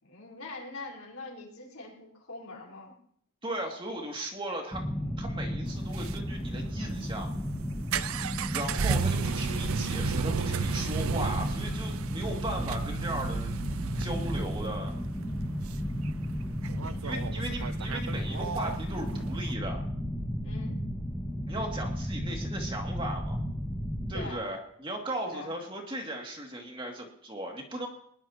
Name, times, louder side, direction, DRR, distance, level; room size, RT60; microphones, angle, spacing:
voice 1, 0.0-2.9 16.7-17.3 20.4-20.8 24.1-24.5 25.3-25.5, left 2 dB, 80° left, -2 dB, 4.2 m, -43 dB
voice 2, 3.4-4.8 5.2-7.3 8.5-13.6 14.0-14.9 17.0-19.8 21.5-23.4 24.1-27.9, right 1 dB, 25° right, 1 dB, 2.3 m, -37 dB
sound 1, 4.7-24.3, equal, 5° left, 1.6 m, -34 dB
sound 2, 5.7-19.5, right 5 dB, 80° right, 0.6 m, -34 dB
21.0 x 19.5 x 2.9 m, 0.67 s
head